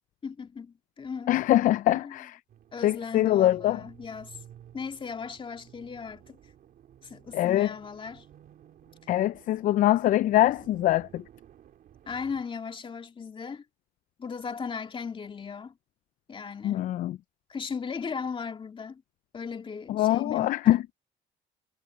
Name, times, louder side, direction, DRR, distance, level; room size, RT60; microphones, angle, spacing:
voice 1, 0.2-1.3 1.9-2.2 2.7-4.4 4.7-6.4 7.0-8.3 12.1-13.6 14.2-15.8 16.3-16.9 17.5-19.0 19.3-20.8, left 5 dB, 30° left, 2.6 m, -37 dB
voice 2, 1.3-2.4 2.8-3.8 7.3-7.7 9.1-11.2 16.6-17.2 19.9-20.8, left 14 dB, 55° left, 0.4 m, -23 dB
sound 1, 2.5-12.4, right 10 dB, 60° right, 2.8 m, -54 dB
cardioid pair, 110°, 17 cm